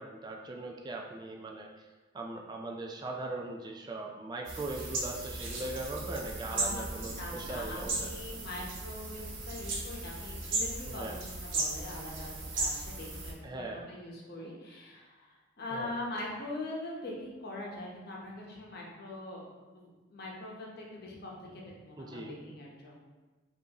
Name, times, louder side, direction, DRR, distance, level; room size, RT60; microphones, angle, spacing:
voice 1, 0.0-1.9 2.1-8.2 10.9-11.1 13.4-13.8 15.7-16.0 22.0-22.3, right 2 dB, 20° right, 0 dB, 0.3 m, -40 dB
sound 1, 4.4-13.3, right 2 dB, 80° right, 0.9 m, -36 dB
voice 2, 6.5-19.4 19.7-23.0, left 2 dB, 55° left, -3 dB, 0.9 m, -42 dB
5.2 x 2.6 x 2.8 m, 1.2 s
head